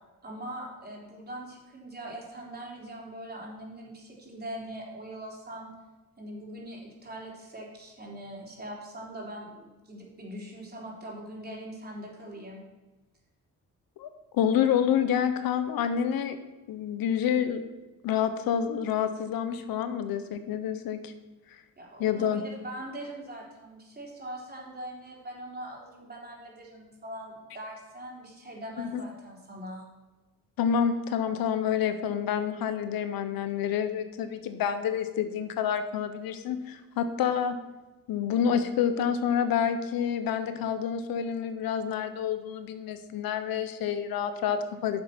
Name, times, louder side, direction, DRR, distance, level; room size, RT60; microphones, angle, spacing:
voice 1, 0.2-5.7 6.2-12.6 21.8-29.8, right 1 dB, 30° right, -3 dB, 3.7 m, -42 dB
voice 2, 14.0-16.4 16.7-17.6 18.0-21.1 22.0-22.4 28.8-29.0 30.6-37.6 38.1-45.0, left 8 dB, 85° left, 10 dB, 0.9 m, -28 dB
8.9 x 7.0 x 5.9 m, 1.1 s
cardioid pair, 95°, 34 cm